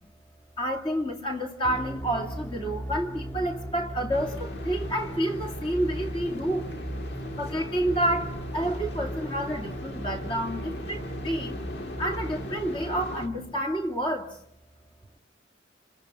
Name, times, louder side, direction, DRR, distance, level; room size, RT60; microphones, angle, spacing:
voice 1, 0.6-6.7 7.4-11.7 12.0-14.3, right 1 dB, 25° left, 2.3 m, -29 dB
sound 1, 1.6-13.6, right 1 dB, 10° left, 1.9 m, -37 dB
sound 2, 4.1-13.3, left 1 dB, 55° left, 1.9 m, -40 dB
27.0 x 26.0 x 6.0 m
head